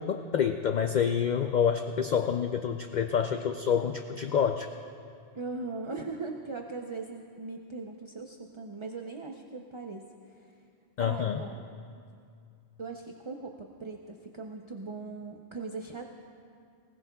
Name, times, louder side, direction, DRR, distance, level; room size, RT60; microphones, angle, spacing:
voice 1, 0.0-4.7 11.0-11.4, left 7 dB, 55° left, 7 dB, 0.5 m, -27 dB
voice 2, 5.3-10.1 11.0-11.7 12.8-16.0, right 3 dB, 35° right, 2 dB, 0.6 m, -39 dB
20.0 x 19.0 x 2.3 m, 2.3 s
omnidirectional pair, 1.1 m